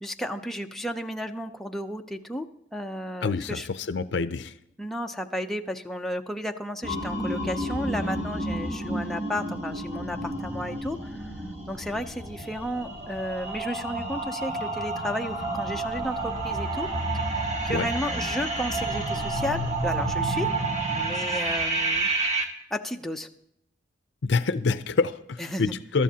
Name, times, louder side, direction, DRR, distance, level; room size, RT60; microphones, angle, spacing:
voice 1, 0.0-2.5 2.7-3.7 4.8-11.3 11.7-16.9 17.3-20.5 21.0-22.1 22.7-23.3 25.4-25.7, equal, ahead, 3 dB, 0.6 m, -33 dB
voice 2, 3.2-4.5 17.7-17.9 24.2-26.0, left 4 dB, 70° left, 12 dB, 0.5 m, -26 dB
sound 1, 6.8-22.4, right 2 dB, 35° right, 1.6 m, -30 dB
21.5 x 13.0 x 2.8 m, 0.79 s
head